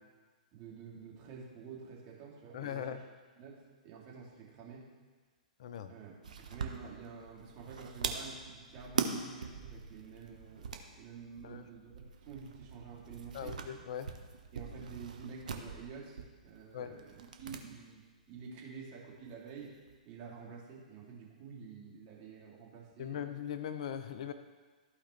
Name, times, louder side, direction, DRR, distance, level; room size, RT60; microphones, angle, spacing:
voice 1, 0.5-2.9 3.4-4.8 5.9-6.1 6.5-13.5 14.5-18.0 18.3-19.7 20.0-23.2, right 5 dB, 35° right, -4 dB, 2.5 m, -49 dB
voice 2, 2.5-3.0 5.6-5.9 11.4-11.6 13.3-14.1 16.7-17.0 23.0-24.3, left 9 dB, 55° left, 10 dB, 0.6 m, -40 dB
sound 1, 6.2-17.6 17.9-18.0 19.2-19.9, right 6 dB, 65° right, 0.9 m, -42 dB
14.5 x 5.0 x 3.2 m, 1.4 s
figure-of-eight pair, 115°, 4 cm